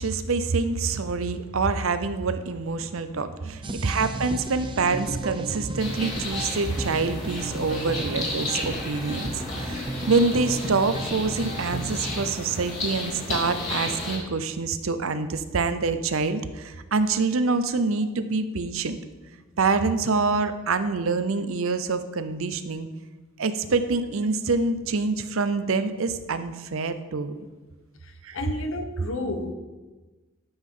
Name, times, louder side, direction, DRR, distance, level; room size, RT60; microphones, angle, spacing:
voice 1, 0.0-19.0 19.6-22.9 23.4-27.3 28.2-28.4, right 4 dB, 85° right, 0.7 m, -26 dB
sound 1, 3.6-12.2, right 2 dB, 25° right, 0.7 m, -34 dB
sound 2, 5.8-14.2, left 2 dB, 35° left, 3.1 m, -33 dB
voice 2, 28.3-29.5, left 2 dB, 75° left, 1.1 m, -31 dB
12.5 x 7.2 x 3.8 m
head